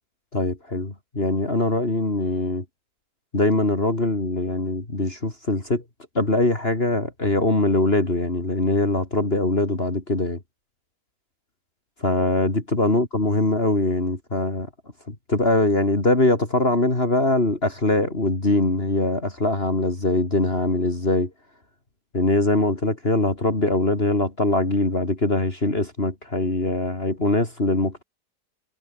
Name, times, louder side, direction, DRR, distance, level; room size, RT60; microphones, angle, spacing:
voice 1, 0.3-2.6 3.3-5.8 6.2-10.4 12.0-14.7 15.1-21.3 22.1-28.0, left 2 dB, 35° left, 3.9 m, -22 dB
omnidirectional pair, 1.8 m